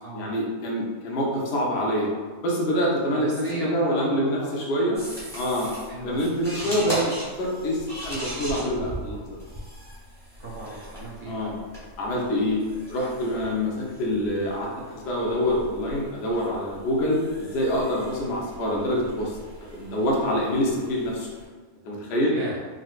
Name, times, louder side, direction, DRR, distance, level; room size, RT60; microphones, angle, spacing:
voice 1, 0.1-2.1 2.4-5.0 5.3-5.7 6.0-9.4 11.2-11.6 12.0-12.6 12.9-19.3 19.7-21.3 21.8-22.3, equal, 60° left, -3 dB, 0.8 m, -26 dB
voice 2, 3.1-4.6 5.9-6.3 6.6-6.9 10.4-11.5 22.3-22.6, right 2 dB, 50° right, -7 dB, 0.7 m, -36 dB
sound 1, 4.9-21.5, right 1 dB, 5° left, 0.8 m, -39 dB
3.8 x 2.1 x 2.4 m, 1.4 s
omnidirectional pair, 1.5 m